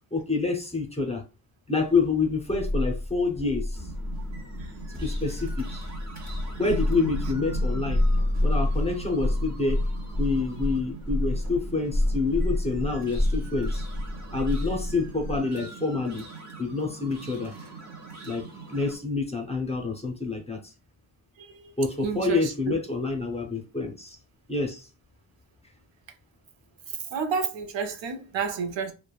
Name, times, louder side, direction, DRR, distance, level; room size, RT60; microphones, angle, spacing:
voice 1, 0.1-1.2 1.7-3.8 4.9-5.8 6.6-8.0 8.4-9.8 10.2-13.8 14.3-16.3 16.6-17.5 18.2-20.6 21.8-24.2 24.5-24.9, left 3 dB, 15° left, 0.5 m, -27 dB
sound 1, 1.9-15.4, left 1 dB, 10° right, 0.9 m, -29 dB
sound 2, 3.7-19.0, right 5 dB, 40° right, 0.7 m, -42 dB
voice 2, 21.4-21.7 22.0-22.8 27.1-28.9, right 5 dB, 85° right, 0.6 m, -31 dB
3.1 x 2.1 x 2.3 m
wide cardioid pair, 125°, 44 cm